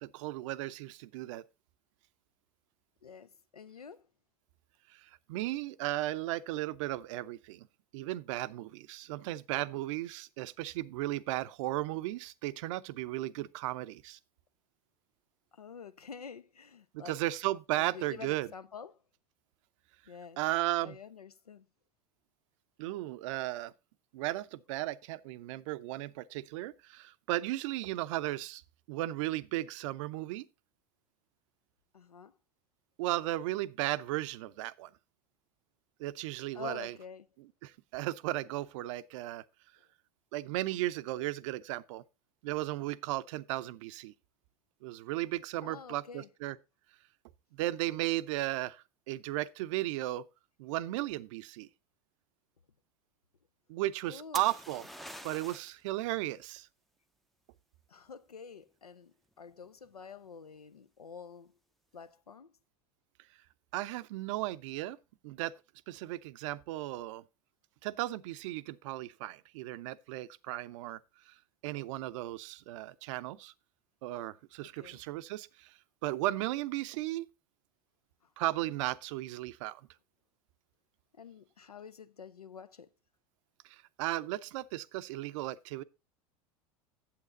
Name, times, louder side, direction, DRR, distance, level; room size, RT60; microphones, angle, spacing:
voice 1, 0.0-1.4 4.9-7.7 7.9-14.2 16.9-18.5 20.4-21.0 22.8-23.7 24.1-28.6 28.9-30.5 33.0-34.9 36.0-37.0 37.4-39.4 40.3-42.0 42.4-44.1 44.8-46.6 47.5-50.2 50.6-51.7 53.7-54.9 55.2-56.7 63.7-65.0 65.2-65.5 65.9-67.2 67.8-71.0 71.3-71.4 71.6-73.5 74.0-77.3 78.4-79.8 83.6-85.8, right 16 dB, 55° right, 0.5 m, -35 dB
voice 2, 3.0-4.0 15.5-17.2 17.8-19.0 20.1-20.4 20.8-21.7 31.9-32.3 36.5-37.3 45.6-46.3 54.1-54.4 57.9-61.5 61.9-62.5 74.6-75.0 81.2-82.9, left 6 dB, 90° left, 0.5 m, -48 dB
sound 1, 54.3-55.8 59.5-59.9, equal, ahead, 0.5 m, -45 dB
8.6 x 7.9 x 3.8 m
figure-of-eight pair, 80°, 19 cm